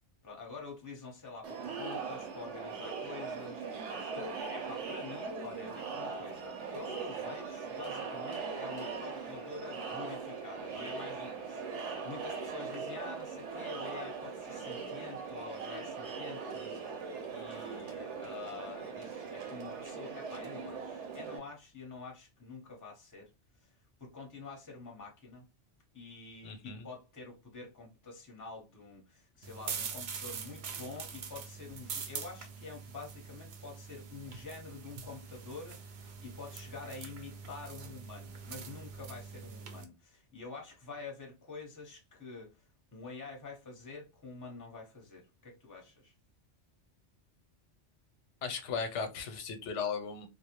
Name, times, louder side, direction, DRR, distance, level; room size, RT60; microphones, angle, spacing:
voice 1, 0.2-23.3 23.6-23.7 24.0-25.5 25.9-42.6 42.9-46.1, left 4 dB, 20° left, 0.7 m, -47 dB
Crowd, 1.4-21.4, right 5 dB, 80° right, 1.0 m, -40 dB
voice 2, 26.4-26.9 48.4-50.3, left 5 dB, 90° left, 0.9 m, -36 dB
sound 1, 29.4-39.8, right 6 dB, 60° right, 0.5 m, -44 dB
2.3 x 2.0 x 2.8 m
omnidirectional pair, 1.2 m